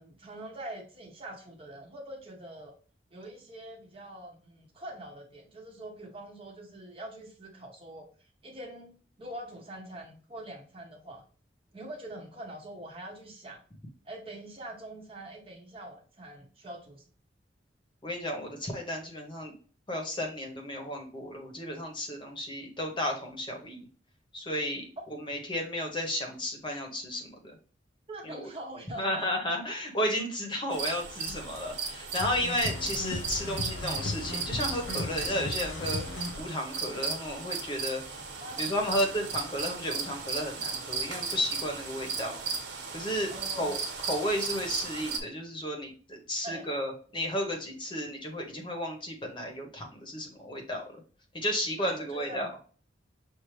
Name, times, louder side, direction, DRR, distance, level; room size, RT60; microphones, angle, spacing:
voice 1, 0.0-2.7 3.1-11.2 11.7-13.6 14.0-17.0 28.1-29.3 38.4-39.1 43.3-43.8 46.4-46.7 51.8-52.5, right 1 dB, 30° right, 1 dB, 1.0 m, -44 dB
voice 2, 18.0-19.5 19.9-23.8 24.3-24.8 25.2-27.5 28.2-28.5 29.0-38.0 38.6-42.4 42.9-43.3 43.6-43.8 44.1-50.8 51.3-52.5, equal, 25° left, 2 dB, 1.1 m, -33 dB
sound 1, 30.7-45.2, right 5 dB, 75° right, 1.1 m, -36 dB
sound 2, 32.2-36.4, left 2 dB, 90° left, 0.6 m, -36 dB
6.2 x 2.7 x 3.2 m, 0.40 s
head